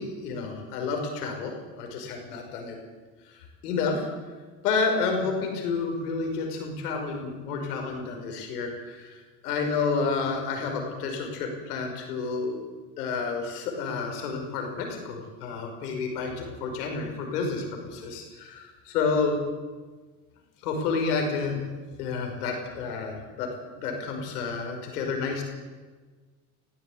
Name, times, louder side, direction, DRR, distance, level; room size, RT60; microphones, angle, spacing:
voice 1, 0.0-2.8 3.3-4.1 4.6-12.6 13.0-19.4 20.6-21.6 22.0-23.5 23.8-25.4, left 4 dB, 85° left, 3 dB, 5.7 m, -30 dB
20.0 x 15.0 x 8.8 m, 1.4 s
hypercardioid pair, 80°, 45 cm